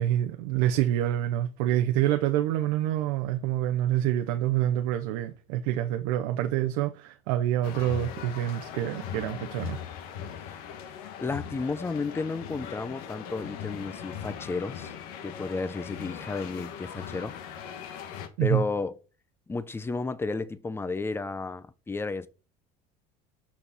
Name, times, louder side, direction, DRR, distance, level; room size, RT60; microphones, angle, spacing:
voice 1, 0.0-9.8 18.4-18.6, right 12 dB, 90° right, 0.7 m, -27 dB
sound 1, 7.6-18.3, left 8 dB, 85° left, 1.2 m, -39 dB
voice 2, 11.2-14.9 15.2-18.0 18.4-19.0 19.5-22.3, left 3 dB, 15° left, 0.6 m, -32 dB
6.3 x 5.8 x 4.1 m
cardioid pair, 115°, 18 cm